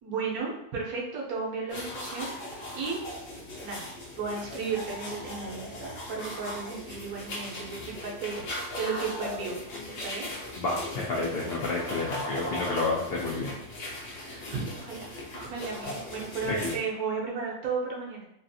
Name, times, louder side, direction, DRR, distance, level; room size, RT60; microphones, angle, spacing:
voice 1, 0.0-3.0 3.6-3.9 4.2-9.6 9.9-10.3 14.1-18.3, right 4 dB, 70° right, -2 dB, 1.2 m, -34 dB
sound 1, 1.7-16.8, left 1 dB, 60° left, 1.0 m, -38 dB
voice 2, 10.6-13.5 16.4-16.7, left 3 dB, 85° left, -3 dB, 0.5 m, -30 dB
3.2 x 2.5 x 2.6 m, 0.82 s
omnidirectional pair, 1.7 m